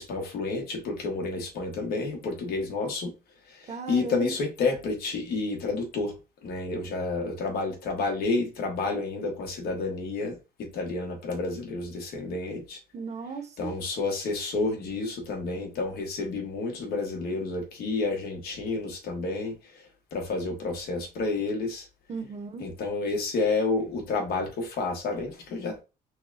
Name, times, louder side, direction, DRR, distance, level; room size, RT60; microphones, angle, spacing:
voice 1, 0.0-3.1 3.5-6.1 6.4-12.8 13.6-19.6 20.1-21.9 22.6-25.8, left 3 dB, 65° left, 1.3 m, -30 dB
voice 2, 3.7-4.3 12.9-13.7 22.1-22.6, right 5 dB, 40° right, 0.8 m, -36 dB
5.6 x 2.2 x 2.5 m
cardioid pair, 110°, 17 cm